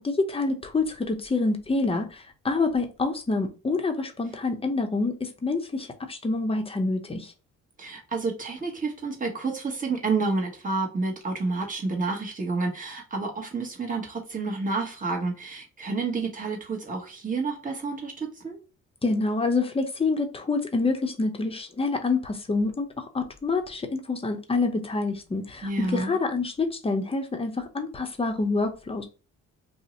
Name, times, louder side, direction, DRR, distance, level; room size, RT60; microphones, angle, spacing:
voice 1, 0.0-7.3 19.0-29.0, left 3 dB, 20° left, 0.6 m, -27 dB
voice 2, 7.8-18.6 25.6-26.2, right 3 dB, 25° right, 1.1 m, -29 dB
2.6 x 2.1 x 3.9 m
cardioid pair, 90°, 30 cm